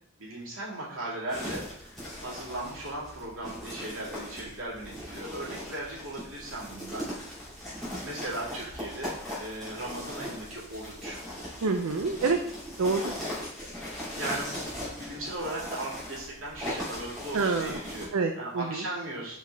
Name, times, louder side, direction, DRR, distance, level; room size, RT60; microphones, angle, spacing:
voice 1, 0.2-2.0 2.2-7.4 8.0-9.1 9.4-11.2 13.9-19.4, right 1 dB, 70° right, -6 dB, 2.4 m, -37 dB
sound 1, 1.3-18.1, equal, ahead, 2.6 m, -39 dB
voice 2, 11.6-12.4 12.8-13.1 17.3-17.8 18.1-18.8, right 4 dB, 85° right, 5 dB, 0.5 m, -27 dB
6.0 x 4.6 x 3.4 m, 0.71 s
head